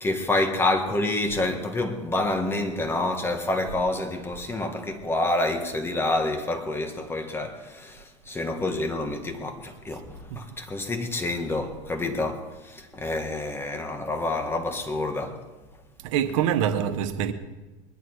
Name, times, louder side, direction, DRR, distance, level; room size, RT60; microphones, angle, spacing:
voice 1, 0.0-15.4, left 2 dB, 15° left, 1.7 m, -28 dB
voice 2, 16.0-17.3, right 9 dB, 80° right, 1.2 m, -25 dB
21.0 x 11.0 x 4.8 m
supercardioid pair, 130°, 16 cm